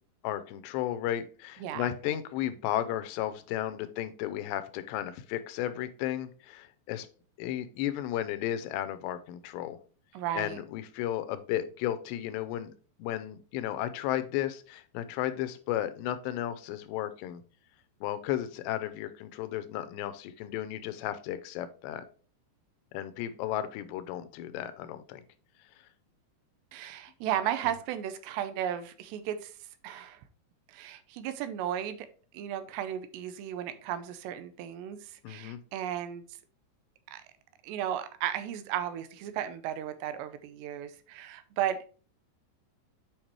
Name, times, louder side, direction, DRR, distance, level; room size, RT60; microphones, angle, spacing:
voice 1, 0.2-7.1 7.4-9.8 10.4-12.7 13.0-17.4 18.0-22.0 22.9-25.2 35.2-35.6, left 12 dB, 80° left, 11 dB, 2.7 m, -34 dB
voice 2, 1.6-2.2 10.1-10.6 26.7-29.6 29.8-30.2 30.7-32.1 32.3-36.2 37.1-37.2 37.6-41.8, right 10 dB, 85° right, 11 dB, 2.8 m, -35 dB
8.7 x 5.3 x 3.1 m, 0.39 s
omnidirectional pair, 5.1 m